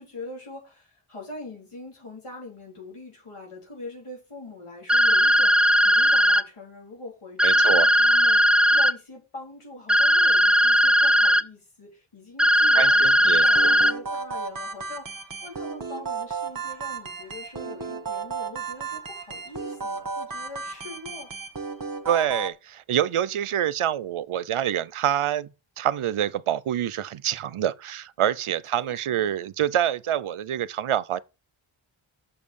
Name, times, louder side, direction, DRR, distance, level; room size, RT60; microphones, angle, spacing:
voice 1, 0.0-5.6 5.8-21.3 28.7-29.4, left 2 dB, 90° left, 4.2 m, -42 dB
sound 1, 4.9-6.4 7.4-8.9 9.9-11.4 12.4-13.9, equal, ahead, 0.5 m, -18 dB
voice 2, 7.4-7.9 12.7-13.4 22.0-25.5 25.8-31.2, right 10 dB, 80° right, 0.6 m, -26 dB
sound 2, 13.4-22.5, right 4 dB, 40° right, 1.3 m, -34 dB
7.0 x 5.3 x 6.9 m
wide cardioid pair, 50°, 50 cm